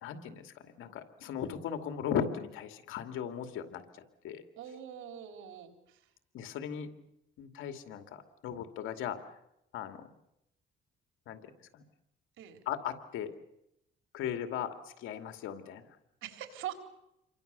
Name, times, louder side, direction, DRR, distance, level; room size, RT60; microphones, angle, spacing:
voice 1, 0.0-4.4 6.3-6.9 7.4-9.3 9.7-10.1 11.3-11.8 12.7-13.3 14.1-15.9, left 8 dB, 85° left, 7 dB, 2.6 m, -38 dB
voice 2, 4.6-6.0 12.4-12.6 16.2-16.7, right 10 dB, 85° right, 5 dB, 4.1 m, -43 dB
28.5 x 24.0 x 6.9 m, 0.82 s
cardioid pair, 90°, 20 cm